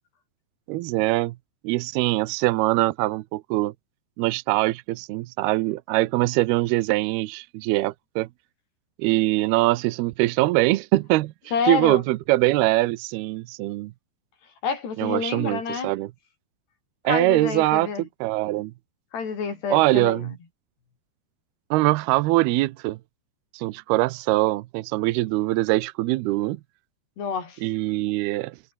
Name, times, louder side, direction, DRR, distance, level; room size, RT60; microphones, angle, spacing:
voice 1, 0.7-1.3 1.6-3.7 4.2-8.3 9.0-11.3 11.7-13.9 15.0-16.1 17.0-18.7 19.7-20.3 21.7-23.0 23.5-26.6 27.6-28.6, right 19 dB, 80° right, 2.7 m, -23 dB
voice 2, 11.5-12.0 14.6-15.9 17.1-18.0 19.1-20.4 27.2-27.6, left 5 dB, 85° left, 7.7 m, -28 dB
omnidirectional pair, 4.6 m